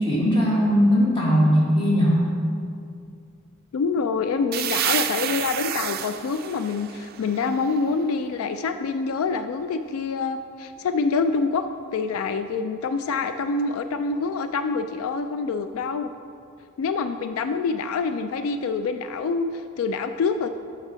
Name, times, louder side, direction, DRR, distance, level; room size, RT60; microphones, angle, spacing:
voice 1, 0.0-2.2, equal, 25° left, -5 dB, 1.7 m, -19 dB
voice 2, 3.7-11.6 11.9-16.1 16.8-20.5, left 4 dB, 85° left, 9 dB, 0.3 m, -26 dB
sound 1, 4.5-8.1, right 11 dB, 45° right, 0.3 m, -29 dB
7.2 x 5.8 x 5.0 m, 2.4 s
head